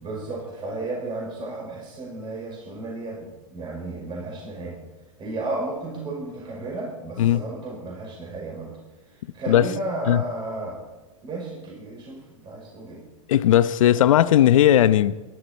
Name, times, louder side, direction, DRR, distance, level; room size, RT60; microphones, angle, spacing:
voice 1, 0.0-4.8 5.2-8.7 9.3-10.8 11.2-13.0, right 2 dB, 25° right, 5.3 m, -33 dB
voice 2, 13.3-15.1, left 11 dB, 70° left, 0.8 m, -17 dB
21.5 x 12.0 x 4.4 m
hypercardioid pair, 125°, 18 cm